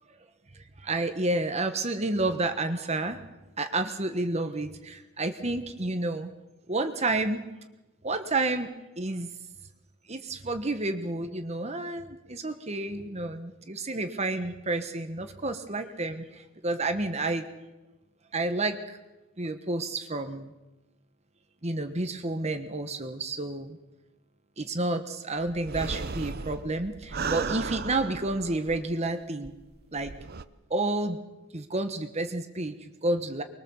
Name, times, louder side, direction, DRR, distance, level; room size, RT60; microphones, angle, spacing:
voice 1, 0.5-3.2 3.6-6.3 6.7-7.4 8.0-8.7 9.0-9.3 10.1-17.5 18.3-19.0 19.4-20.5 21.6-23.8 24.6-29.5 29.9-30.1 30.7-31.2 31.5-33.4, right 2 dB, 30° right, 8 dB, 1.3 m, -30 dB
sound 1, 25.5-29.1 29.4-29.5 30.0-30.4, right 4 dB, 45° right, 0.8 m, -35 dB
25.0 x 22.0 x 7.2 m, 1.1 s
head